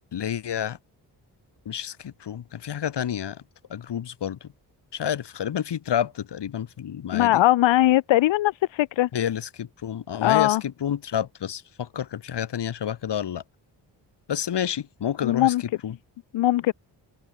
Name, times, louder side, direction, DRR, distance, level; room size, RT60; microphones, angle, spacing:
voice 1, 0.1-0.8 1.6-3.4 3.7-4.5 4.9-7.4 9.1-13.4 14.3-16.0, left 9 dB, 65° left, 2.9 m, -29 dB
voice 2, 7.1-9.1 10.2-10.6 15.2-15.6 16.3-16.7, left 15 dB, 85° left, 1.1 m, -20 dB
cardioid pair, 65°, 44 cm